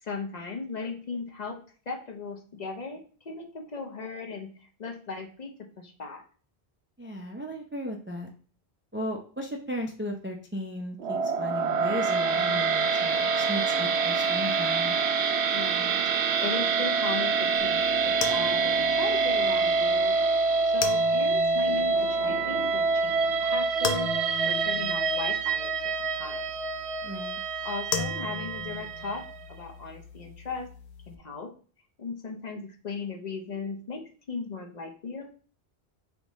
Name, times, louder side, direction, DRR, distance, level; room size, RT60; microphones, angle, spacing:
voice 1, 0.0-1.6 1.9-4.5 4.8-6.2 15.5-20.2 20.7-24.2 24.4-26.4 27.6-30.7 31.1-31.5 32.0-35.3, left 4 dB, 45° left, 2 dB, 0.7 m, -37 dB
voice 2, 7.0-8.3 8.9-14.9 27.0-27.4, equal, 20° right, 1 dB, 0.3 m, -36 dB
sound 1, 11.0-29.3, right 4 dB, 85° right, 0.9 m, -26 dB
sound 2, 17.6-31.1, left 6 dB, 85° left, 0.9 m, -39 dB
3.7 x 3.6 x 4.0 m, 0.43 s
omnidirectional pair, 1.1 m